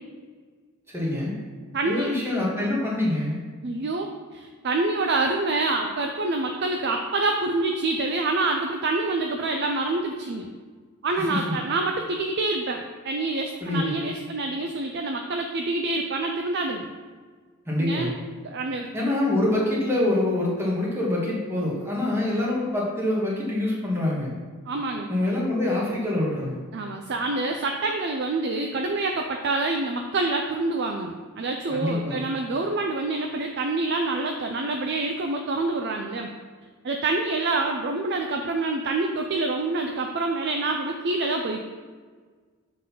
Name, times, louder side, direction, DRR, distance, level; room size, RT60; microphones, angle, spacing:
voice 1, 0.9-1.3 1.8-3.4 11.1-11.6 13.6-14.0 17.7-18.1 18.9-24.3 25.1-26.6 31.7-32.2, left 1 dB, 10° right, -5 dB, 1.5 m, -25 dB
voice 2, 1.7-2.1 3.6-10.5 11.0-16.9 17.8-18.1 18.4-18.9 24.7-25.1 26.7-36.3 36.8-41.6, right 2 dB, 50° right, 3 dB, 0.5 m, -26 dB
7.5 x 4.0 x 5.6 m, 1.5 s
head